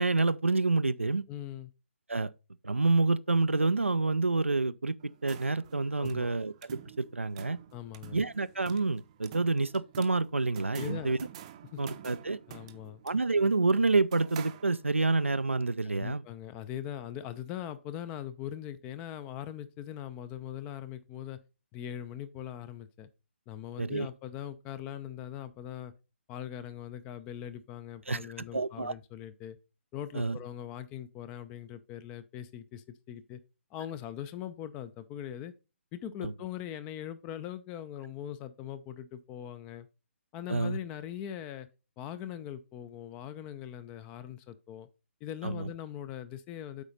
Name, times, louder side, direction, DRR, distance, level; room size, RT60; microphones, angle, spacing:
voice 1, 0.0-1.2 2.1-2.3 2.6-7.6 8.1-11.2 11.8-12.4 13.0-16.2 23.8-24.1 28.1-28.2 28.5-28.9 30.1-30.4 36.2-36.3 40.5-40.8 45.4-45.7, right 3 dB, 80° right, 0.4 m, -28 dB
voice 2, 1.3-1.7 6.0-6.4 7.7-8.2 10.7-11.1 11.7-11.8 12.5-13.0 15.8-21.4 21.7-23.1 23.5-25.9 26.3-29.6 29.9-33.4 33.7-35.5 35.9-39.9 40.3-41.7 42.0-44.9 45.2-46.8, left 10 dB, 15° left, 0.4 m, -41 dB
sound 1, 5.0-15.1, right 11 dB, 30° right, 0.6 m, -49 dB
8.1 x 4.8 x 3.9 m
figure-of-eight pair, 135°, 7 cm